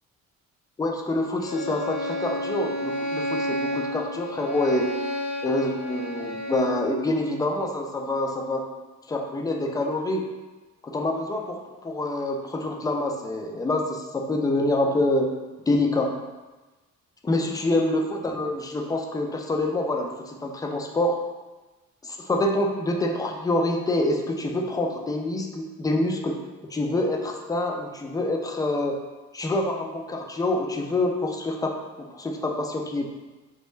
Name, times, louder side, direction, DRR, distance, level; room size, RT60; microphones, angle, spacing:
voice 1, 0.8-4.9 5.4-8.6 9.1-10.2 10.8-15.3 15.7-16.1 17.2-21.2 22.0-26.4 26.7-29.0 29.3-31.7 32.0-33.0, left 2 dB, 15° left, 2 dB, 0.3 m, -26 dB
Bowed string instrument, 1.4-6.9, left 1 dB, 60° left, 1.1 m, -31 dB
3.1 x 2.2 x 3.2 m, 1.2 s
cardioid pair, 90°, 30 cm